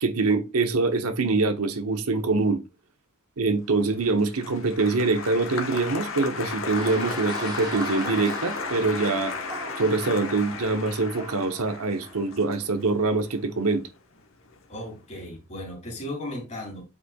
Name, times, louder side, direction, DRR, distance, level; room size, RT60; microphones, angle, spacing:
voice 1, 0.0-2.6 3.4-9.4 9.8-13.8, right 3 dB, 85° right, 1.0 m, -24 dB
Applause, 3.8-14.2 14.5-15.1, left 4 dB, 60° left, 1.2 m, -35 dB
sound 1, 6.7-13.8, right 2 dB, 20° right, 0.9 m, -41 dB
voice 2, 14.7-16.8, left 1 dB, 30° left, 2.8 m, -36 dB
8.2 x 5.7 x 2.3 m
head